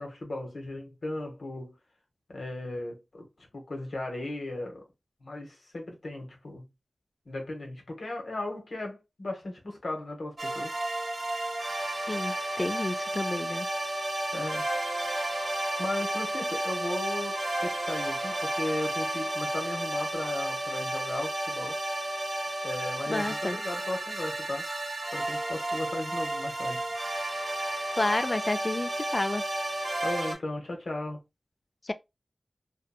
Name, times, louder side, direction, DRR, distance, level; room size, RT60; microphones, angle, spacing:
voice 1, 0.0-1.8 2.3-4.9 5.2-6.7 7.3-10.7 14.3-14.6 15.8-21.8 22.6-24.7 25.1-26.8 30.0-31.2, left 1 dB, 75° left, 0.9 m, -36 dB
sound 1, 10.4-30.3, right 1 dB, 55° right, 0.7 m, -32 dB
voice 2, 12.1-13.7 23.1-23.6 28.0-29.4 31.9-32.0, left 2 dB, 35° left, 0.3 m, -30 dB
2.8 x 2.2 x 2.2 m
wide cardioid pair, 70°, 0 cm